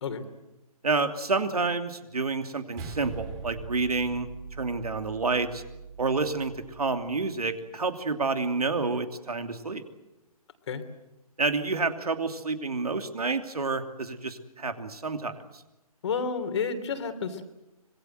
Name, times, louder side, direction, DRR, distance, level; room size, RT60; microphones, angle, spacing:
voice 1, 0.8-4.3 4.6-5.6 6.0-9.8 11.4-15.6, right 3 dB, 75° right, 8 dB, 2.9 m, -29 dB
sound 1, 2.8-7.3, right 5 dB, 20° right, 3.6 m, -42 dB
voice 2, 16.0-17.4, left 5 dB, 45° left, 9 dB, 3.2 m, -30 dB
26.0 x 22.5 x 7.8 m, 0.98 s
figure-of-eight pair, 140°, 20 cm